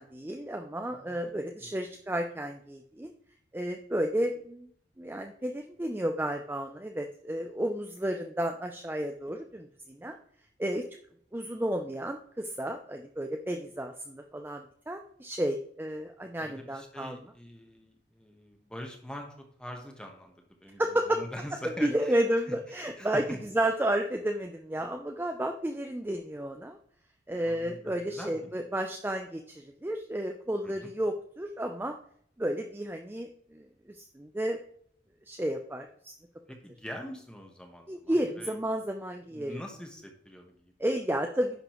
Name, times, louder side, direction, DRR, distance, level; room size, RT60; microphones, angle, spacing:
voice 1, 0.0-3.1 3.5-4.7 5.0-10.2 10.6-10.8 11.3-17.2 20.8-21.2 21.8-26.8 27.3-31.9 32.4-34.6 35.3-36.1 37.9-39.6 40.8-41.6, right 1 dB, 10° right, 4 dB, 0.4 m, -32 dB
voice 2, 16.4-19.3 19.6-20.4 20.6-22.5 22.8-23.4 27.4-28.5 30.6-30.9 36.5-38.5 39.3-40.7, equal, 5° left, 3 dB, 1.1 m, -44 dB
10.5 x 6.0 x 3.0 m, 0.63 s
head